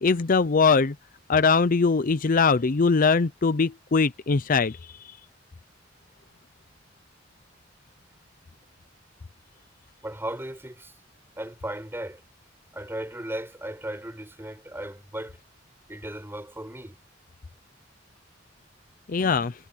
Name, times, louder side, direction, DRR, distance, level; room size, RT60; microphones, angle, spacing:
voice 1, 0.0-0.9 1.3-4.8 19.1-19.5, left 4 dB, 45° left, 0.6 m, -21 dB
voice 2, 10.0-10.9 11.4-12.2 12.7-15.4 15.9-17.0, right 1 dB, 10° right, 7.6 m, -36 dB
head